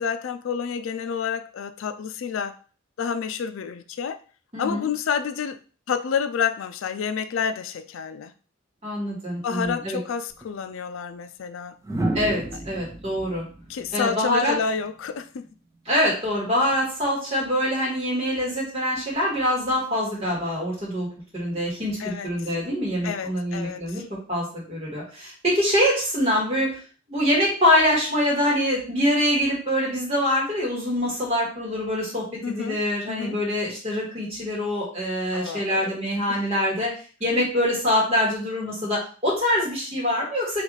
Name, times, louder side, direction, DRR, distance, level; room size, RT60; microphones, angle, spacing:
voice 1, 0.0-2.6 3.0-4.2 4.6-5.6 5.9-8.3 9.4-11.7 13.7-15.5 22.0-22.3 23.0-24.0 32.4-32.8 33.1-33.4 35.3-36.0 36.3-36.5, left 6 dB, 75° left, 0.4 m, -29 dB
voice 2, 4.5-4.9 8.8-10.0 12.1-13.5 13.9-14.6 15.9-21.1 21.3-24.0 24.3-26.8 27.1-36.9 37.2-40.6, left 1 dB, 30° right, 1.9 m, -24 dB
sound 1, 10.3-10.5 11.8-14.9 16.5-16.8, right 1 dB, 15° right, 0.3 m, -32 dB
4.0 x 3.2 x 3.1 m
head